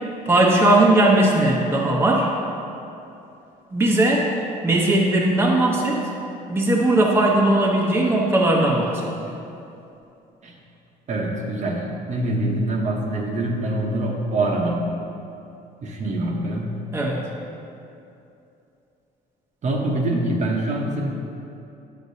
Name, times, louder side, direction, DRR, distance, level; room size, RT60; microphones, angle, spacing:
voice 1, 0.3-2.3 3.7-4.3 4.6-6.0 6.5-9.1 16.9-17.2, right 1 dB, 15° right, -2 dB, 0.8 m, -18 dB
voice 2, 11.1-14.9 15.8-16.7 19.6-21.1, right 1 dB, 45° right, 0 dB, 0.9 m, -24 dB
8.3 x 6.6 x 2.7 m, 2.7 s
cardioid pair, 110°, 17 cm